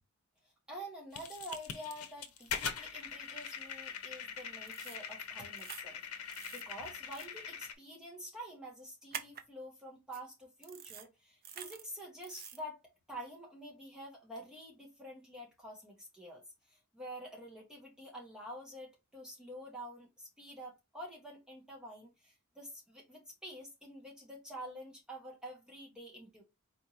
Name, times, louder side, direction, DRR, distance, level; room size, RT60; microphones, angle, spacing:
voice 1, 0.7-12.8 13.1-16.4 16.7-26.4, equal, 5° right, 1.4 m, -48 dB
sound 1, 1.1-7.7, left 6 dB, 90° left, 0.7 m, -42 dB
sound 2, 4.7-5.0 5.6-5.8 6.3-6.6 7.1-7.3 9.1-9.4 10.1-10.2 10.6-11.1 11.4-11.8 12.2-12.6, right 8 dB, 45° right, 0.6 m, -46 dB
4.4 x 3.6 x 2.9 m
head